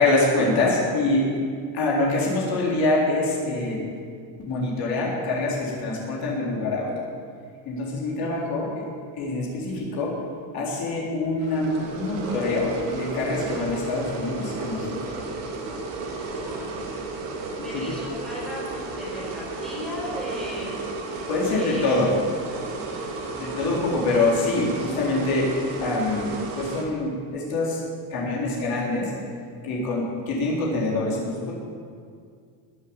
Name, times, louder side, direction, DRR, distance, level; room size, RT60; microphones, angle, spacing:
voice 1, 0.0-1.4 1.7-3.8 4.4-6.9 7.7-8.8 9.2-10.1 10.5-15.1 17.7-17.8 21.3-22.1 23.4-25.5 25.8-27.8 28.1-29.1 29.6-31.5, left 2 dB, 50° left, -4 dB, 3.9 m, -25 dB
sound 1, 11.4-26.8, right 3 dB, 85° right, 3.1 m, -33 dB
voice 2, 16.2-16.7 17.6-20.7 21.5-22.0 22.7-23.5, left 1 dB, ahead, -6 dB, 4.6 m, -36 dB
20.5 x 7.5 x 7.3 m, 2.2 s
cardioid pair, 165°, 46 cm